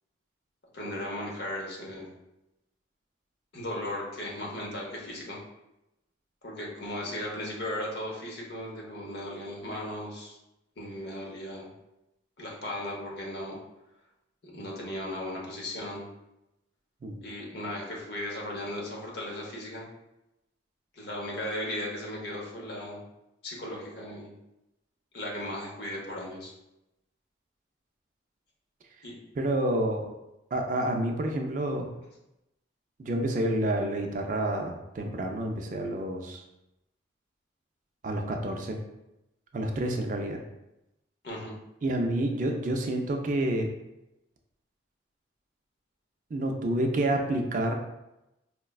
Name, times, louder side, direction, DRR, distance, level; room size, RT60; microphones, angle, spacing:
voice 1, 0.7-2.1 3.5-5.4 6.4-10.4 10.8-11.7 12.4-13.6 14.5-16.1 17.2-19.9 20.9-23.0 23.4-24.3 25.1-26.5 29.0-29.2 41.2-41.6, left 1 dB, 60° left, -3 dB, 0.8 m, -36 dB
voice 2, 29.3-30.1 30.5-31.9 33.0-36.4 38.0-38.8 39.5-40.4 41.8-43.7 46.3-47.7, right 1 dB, 40° right, 3 dB, 0.3 m, -29 dB
4.7 x 2.2 x 2.3 m, 0.91 s
head